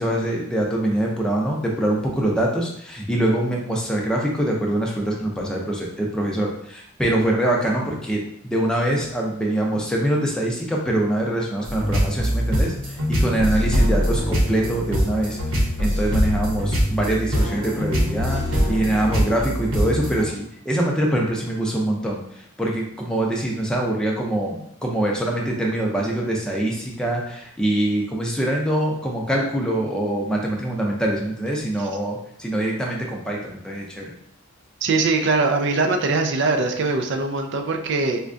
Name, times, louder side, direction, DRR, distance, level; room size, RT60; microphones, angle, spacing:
voice 1, 0.0-15.4 15.8-22.2 22.6-34.1, right 1 dB, 5° left, -2 dB, 0.4 m, -24 dB
sound 1, 11.6-20.3, equal, 75° right, 0.9 m, -23 dB
voice 2, 34.8-38.2, right 3 dB, 55° right, 5 dB, 0.4 m, -22 dB
4.3 x 2.2 x 2.5 m, 0.71 s
head